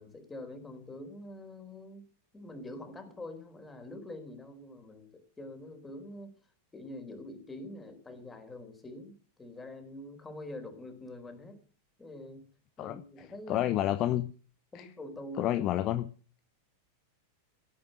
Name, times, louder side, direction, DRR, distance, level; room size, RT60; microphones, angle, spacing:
voice 1, 0.0-2.1 2.3-6.3 6.7-11.6 12.0-12.5 12.8-14.2 14.7-15.6, left 1 dB, 15° left, 4.4 m, -45 dB
voice 2, 13.5-14.3 14.7-14.9 15.4-16.1, left 13 dB, 35° left, 0.8 m, -29 dB
17.0 x 9.0 x 7.9 m
figure-of-eight pair, 90°, 0 cm